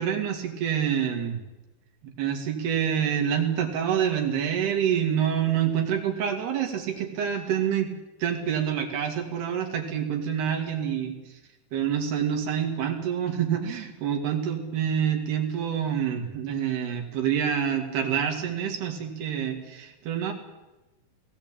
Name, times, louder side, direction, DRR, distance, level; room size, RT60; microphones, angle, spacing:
voice 1, 0.0-1.4 2.0-7.9 8.2-11.2 11.7-20.3, right 8 dB, 75° right, 3 dB, 4.4 m, -27 dB
18.5 x 17.0 x 8.8 m, 1.1 s
omnidirectional pair, 4.7 m